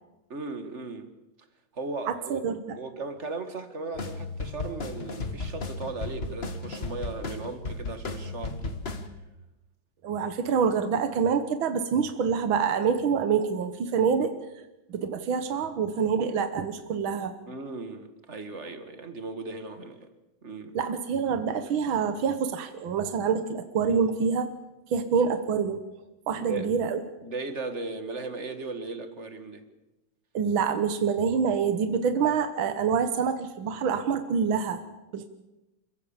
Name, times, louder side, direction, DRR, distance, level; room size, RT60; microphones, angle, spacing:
voice 1, 0.3-1.1 1.7-2.4 2.8-8.8 17.5-20.1 20.4-20.8 26.4-26.7 27.2-29.7, right 3 dB, 35° right, 9 dB, 2.0 m, -37 dB
voice 2, 2.1-2.8 10.0-14.3 14.9-17.4 20.7-24.5 24.9-25.8 26.3-27.0 30.3-34.8 35.1-35.3, right 6 dB, 75° right, 9 dB, 2.0 m, -26 dB
sound 1, 3.9-9.1, left 3 dB, 35° left, 1.5 m, -35 dB
28.0 x 16.0 x 7.2 m, 1.0 s
omnidirectional pair, 2.2 m